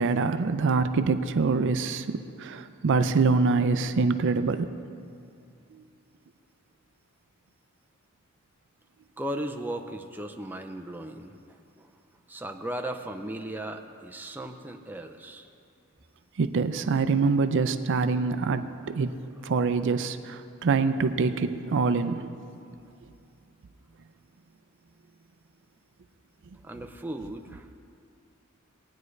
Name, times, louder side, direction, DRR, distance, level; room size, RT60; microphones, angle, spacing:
voice 1, 0.0-2.1 2.4-4.7 5.7-5.8 16.4-19.1 19.4-22.4, right 4 dB, 60° right, 10 dB, 0.4 m, -25 dB
voice 2, 9.2-11.9 12.3-15.5 19.0-19.1 26.6-27.7, right 1 dB, 10° right, 4 dB, 0.5 m, -37 dB
18.5 x 9.4 x 3.2 m, 2.5 s
head